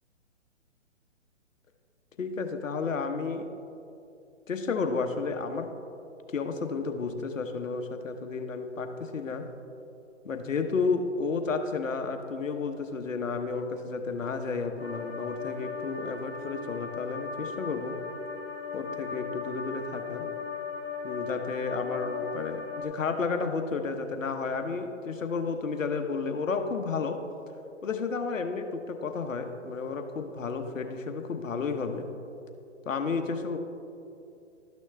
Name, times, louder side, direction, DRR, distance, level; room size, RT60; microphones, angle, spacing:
voice 1, 2.2-3.5 4.5-5.7 6.3-9.5 10.2-18.0 18.7-20.3 21.0-27.2 27.8-32.1 32.9-33.6, left 4 dB, 80° left, 7 dB, 1.0 m, -32 dB
sound 1, 14.8-22.8, left 5 dB, 50° left, 1.6 m, -37 dB
12.5 x 6.3 x 3.3 m, 2.7 s
hypercardioid pair, 140°, 38 cm